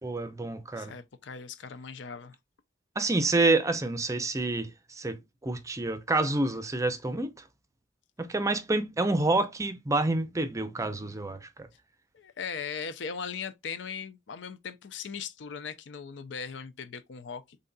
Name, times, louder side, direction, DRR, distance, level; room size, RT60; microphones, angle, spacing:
voice 1, 0.0-0.9 3.0-5.2 5.4-7.3 8.2-11.7, right 2 dB, 15° right, 0.5 m, -28 dB
voice 2, 0.7-2.4 12.1-17.6, left 6 dB, 75° left, 0.5 m, -39 dB
3.9 x 3.7 x 2.2 m
head